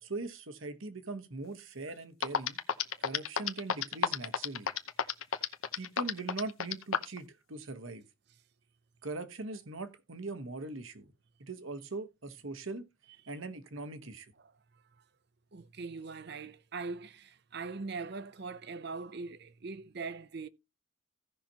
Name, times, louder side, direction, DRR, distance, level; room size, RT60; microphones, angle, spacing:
voice 1, 0.0-2.6 3.0-4.7 5.4-5.5 5.8-8.0 9.0-11.1 11.4-12.8 13.3-14.3, right 3 dB, 70° right, 1.2 m, -41 dB
sound 1, 1.9-2.0 2.2-7.2, left 7 dB, 75° left, 0.8 m, -30 dB
voice 2, 15.5-20.5, right 4 dB, 50° right, 0.6 m, -41 dB
16.0 x 5.8 x 2.8 m
head